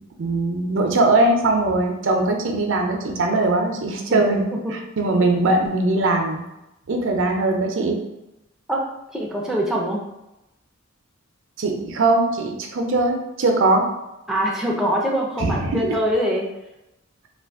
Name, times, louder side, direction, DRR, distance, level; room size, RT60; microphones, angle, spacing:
voice 1, 0.2-4.4 4.7-6.4 6.9-8.0 11.6-13.9 15.4-15.8, right 2 dB, 70° right, 3 dB, 0.5 m, -20 dB
voice 2, 9.1-10.0 14.3-16.5, equal, 5° right, -2 dB, 0.4 m, -23 dB
2.5 x 2.4 x 3.5 m, 0.92 s
head